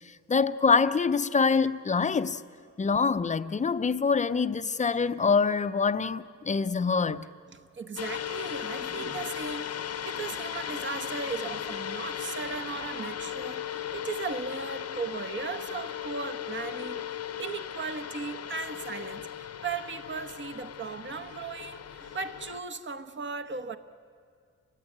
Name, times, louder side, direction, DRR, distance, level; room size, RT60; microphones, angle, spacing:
voice 1, 0.3-2.4 2.8-7.2, left 5 dB, 25° left, 0.5 m, -25 dB
voice 2, 7.5-23.8, right 4 dB, 40° right, 1.0 m, -37 dB
sound 1, 8.0-22.6, left 10 dB, 55° left, 0.8 m, -37 dB
29.5 x 16.0 x 9.9 m
wide cardioid pair, 165°, 30 cm